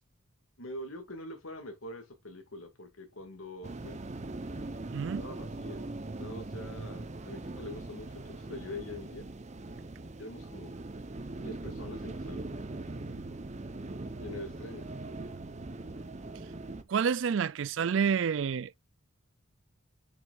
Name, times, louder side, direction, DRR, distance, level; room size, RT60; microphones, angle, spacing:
voice 1, 0.6-4.0 5.2-5.9 6.1-9.3 10.2-10.8 11.4-12.4 14.2-14.9, left 1 dB, 85° left, 2.3 m, -44 dB
sound 1, 3.6-16.8, right 2 dB, 35° right, 0.7 m, -41 dB
voice 2, 4.9-5.2 16.9-18.8, right 6 dB, 65° right, 0.4 m, -28 dB
7.0 x 6.0 x 2.5 m
head